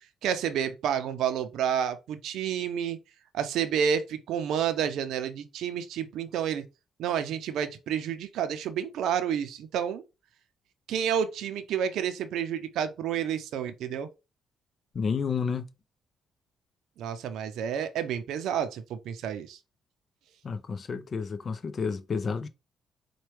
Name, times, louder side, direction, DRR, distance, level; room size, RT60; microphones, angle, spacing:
voice 1, 0.2-3.0 3.3-6.6 7.0-10.0 10.9-14.1 17.0-19.6, right 8 dB, 80° right, 0.5 m, -30 dB
voice 2, 14.9-15.7 20.4-22.5, left 5 dB, 45° left, 0.5 m, -30 dB
4.3 x 2.2 x 3.1 m
cardioid pair, 90°, 0 cm